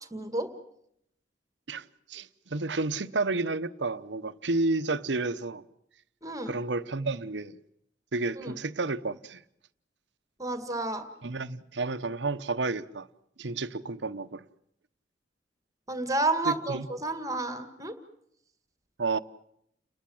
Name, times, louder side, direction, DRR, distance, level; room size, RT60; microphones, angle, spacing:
voice 1, 0.1-0.5 6.2-6.5 8.4-8.5 10.4-11.0 15.9-17.9, right 2 dB, 20° right, 1.8 m, -30 dB
voice 2, 1.7-5.6 6.5-7.6 8.1-9.4 11.2-13.1 13.4-14.4 16.4-16.9 19.0-19.2, right 3 dB, 75° right, 1.0 m, -31 dB
29.5 x 20.5 x 7.8 m
head